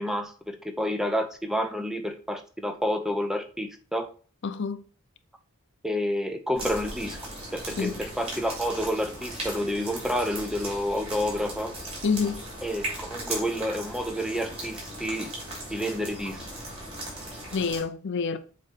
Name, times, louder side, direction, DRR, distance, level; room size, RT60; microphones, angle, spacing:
voice 1, 0.0-4.1 5.8-7.2 7.5-11.7 12.6-15.3 15.7-16.4, equal, ahead, 0.6 m, -29 dB
voice 2, 4.4-4.8 7.7-8.0 12.0-12.4 17.5-18.4, left 5 dB, 55° left, 0.5 m, -28 dB
sound 1, 6.6-17.8, right 1 dB, 25° right, 3.0 m, -38 dB
7.7 x 3.1 x 4.6 m
head